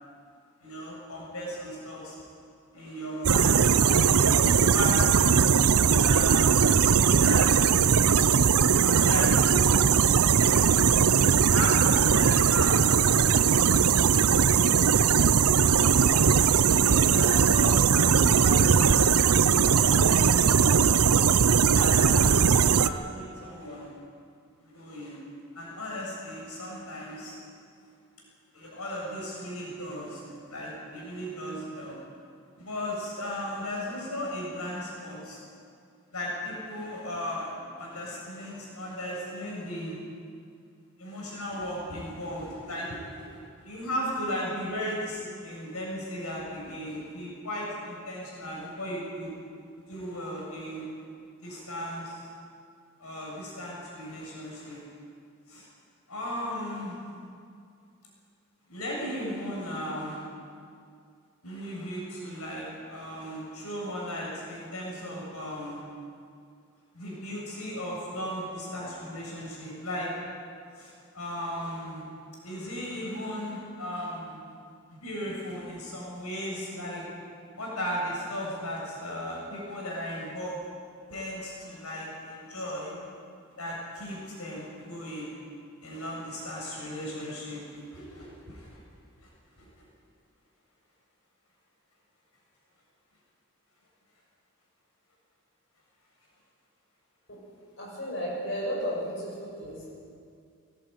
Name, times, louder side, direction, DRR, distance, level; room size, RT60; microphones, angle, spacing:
voice 1, 0.6-2.2 2.7-3.6 3.9-5.2 5.9-6.6 6.9-7.6 8.8-9.8 10.3-10.7 11.5-14.7 15.6-19.2 19.8-21.1 21.6-23.9 24.6-25.2 25.5-27.4 28.5-32.0 32.6-35.4 36.1-40.0 41.0-49.3 49.9-50.9 51.4-52.2 53.0-54.8 55.5-55.7 56.1-57.0 58.7-60.2 61.4-65.8 66.9-70.1 70.8-72.0 72.4-74.4 74.9-77.0 77.6-80.6 81.1-83.0 83.6-85.3 85.8-87.6 87.9-88.8 89.2-89.3 89.6-89.7, equal, 85° left, -3 dB, 7.1 m, -36 dB
sound 1, 3.2-22.9, right 6 dB, 90° right, 0.7 m, -20 dB
voice 2, 97.8-99.9, equal, 55° left, -4 dB, 6.8 m, -33 dB
21.0 x 18.0 x 9.2 m, 2.3 s
head